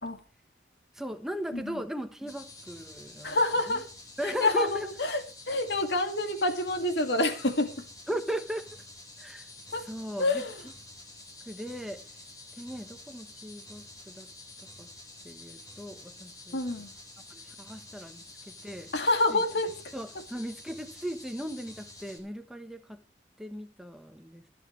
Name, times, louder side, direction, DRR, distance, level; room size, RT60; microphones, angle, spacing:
voice 1, 1.0-3.4 3.7-3.8 4.2-4.9 8.1-8.6 9.2-9.5 9.8-10.4 11.5-12.0 12.6-14.3 14.8-14.9 15.2-16.6 17.3-18.9 19.3-19.4 19.9-23.0 23.4-24.4, right 1 dB, ahead, 1.2 m, -37 dB
sound 1, 2.3-22.2, left 2 dB, 20° left, 3.5 m, -49 dB
voice 2, 3.2-3.8 4.2-7.7 9.7-9.8 10.2-10.6 16.5-16.9 18.9-19.7, left 2 dB, 75° left, 2.2 m, -27 dB
24.0 x 8.5 x 3.2 m
head